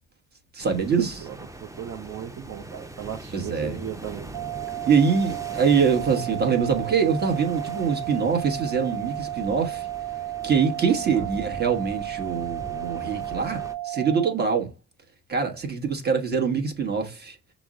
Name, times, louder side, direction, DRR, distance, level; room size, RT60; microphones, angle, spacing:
voice 1, 0.5-1.3 3.3-3.8 4.9-9.9 10.4-14.7 15.3-17.4, right 6 dB, 35° right, 1.1 m, -24 dB
sound 1, 0.6-13.7, right 2 dB, 10° right, 0.6 m, -42 dB
voice 2, 1.2-4.3 11.1-11.3, right 9 dB, 55° right, 0.6 m, -37 dB
sound 2, 4.3-14.3, right 14 dB, 90° right, 0.8 m, -33 dB
6.1 x 2.1 x 3.6 m
cardioid pair, 90°, 30 cm